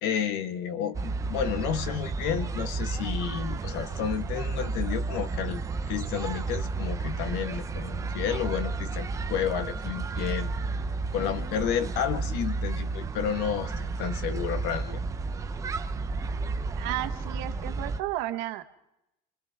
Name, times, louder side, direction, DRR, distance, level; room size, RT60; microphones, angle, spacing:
voice 1, 0.0-10.5 11.1-15.0, left 8 dB, 65° left, 10 dB, 1.5 m, -31 dB
sound 1, 0.9-18.0, right 4 dB, 15° right, 0.7 m, -32 dB
voice 2, 16.8-18.6, right 15 dB, 75° right, 8 dB, 1.4 m, -33 dB
29.5 x 24.0 x 3.6 m, 0.88 s
cardioid pair, 160°, 18 cm